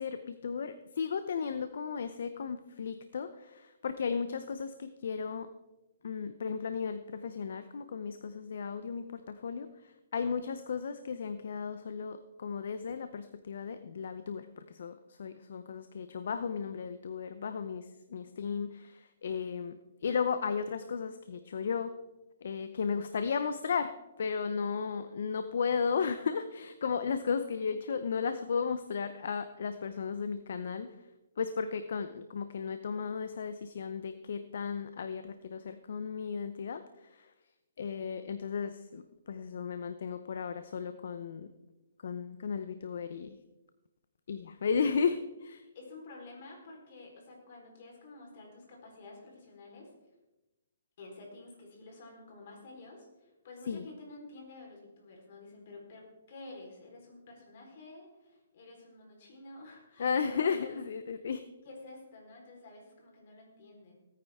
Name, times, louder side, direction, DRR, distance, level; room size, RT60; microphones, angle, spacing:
voice 1, 0.0-5.5 6.0-9.7 10.1-14.9 15.2-19.7 20.0-21.9 22.4-23.9 24.2-30.9 31.4-36.8 37.8-39.0 39.3-41.5 42.0-43.4 44.3-45.6 53.7-53.9 60.0-61.4, left 6 dB, 65° left, 10 dB, 0.7 m, -34 dB
voice 2, 45.7-49.9 51.0-60.9 61.6-63.9, left 2 dB, 50° left, 0 dB, 4.0 m, -50 dB
17.0 x 9.5 x 3.6 m, 1.0 s
hypercardioid pair, 160°, 0 cm